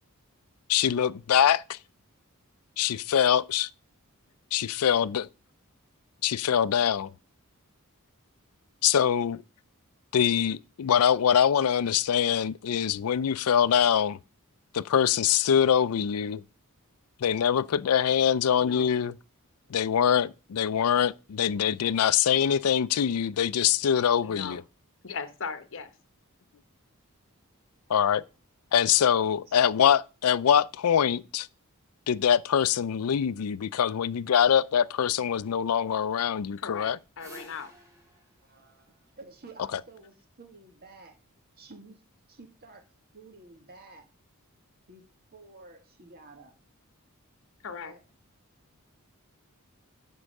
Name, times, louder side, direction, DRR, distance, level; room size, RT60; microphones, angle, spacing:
voice 1, 0.7-1.8 2.8-3.7 4.5-5.3 6.2-7.1 8.8-9.4 10.1-14.2 14.7-16.4 17.2-19.1 19.7-24.6 27.9-28.3 28.7-31.5 32.1-37.0, left 8 dB, 80° left, 0.4 m, -24 dB
voice 2, 18.5-18.9 24.2-24.6 25.0-25.9 36.6-37.7 47.6-47.9, left 5 dB, 60° left, 1.0 m, -38 dB
voice 3, 29.2-29.6 38.4-41.2 41.6-42.0 42.3-42.9 43.1-44.1 44.9-45.0 45.3-46.6 47.7-48.0, right 3 dB, 45° right, 1.9 m, -51 dB
sound 1, 37.0-39.8, right 1 dB, 15° right, 3.0 m, -52 dB
9.9 x 4.5 x 6.4 m
head